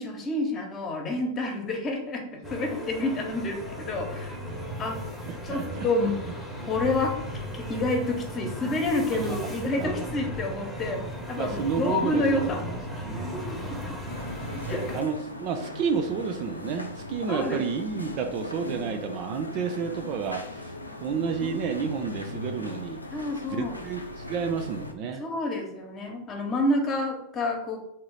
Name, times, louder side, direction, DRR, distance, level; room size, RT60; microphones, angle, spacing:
voice 1, 0.0-4.4 4.8-5.0 5.4-6.2 6.7-11.0 11.3-12.6 13.3-13.6 14.7-15.0 17.3-17.6 21.4-21.6 23.1-23.7 25.2-27.8, left 2 dB, 25° left, 2 dB, 1.1 m, -29 dB
sound 1, 2.4-15.0, equal, ahead, 1.2 m, -36 dB
voice 2, 5.3-5.9 9.1-10.3 11.4-13.4 14.2-14.6 14.9-20.7 21.0-23.0 23.5-25.2, right 6 dB, 40° right, 5 dB, 0.5 m, -31 dB
sound 2, 14.1-24.9, left 2 dB, 85° left, 0.5 m, -39 dB
3.7 x 2.9 x 4.7 m, 0.80 s
figure-of-eight pair, 90°, 0 cm